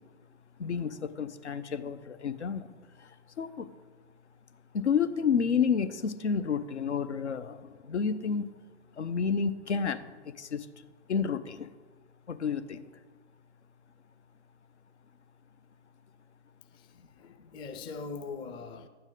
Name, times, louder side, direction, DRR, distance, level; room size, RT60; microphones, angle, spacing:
voice 1, 0.6-3.7 4.7-8.5 8.9-10.7 11.1-11.7 12.3-12.9, left 6 dB, 80° left, 12 dB, 0.7 m, -30 dB
voice 2, 16.7-18.9, left 4 dB, 15° left, 8 dB, 0.4 m, -42 dB
12.0 x 8.8 x 3.8 m, 1.4 s
figure-of-eight pair, 110°, 34 cm